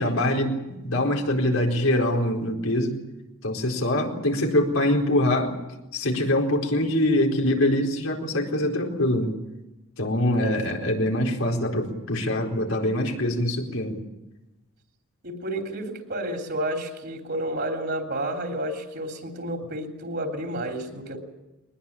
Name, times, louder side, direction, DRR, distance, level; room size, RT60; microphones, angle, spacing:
voice 1, 0.0-2.9 3.4-5.5 5.9-9.3 10.0-14.0, left 1 dB, 85° left, 1 dB, 4.4 m, -24 dB
voice 2, 15.2-21.2, right 1 dB, 50° right, 2 dB, 3.4 m, -31 dB
22.5 x 20.5 x 8.8 m, 1.0 s
head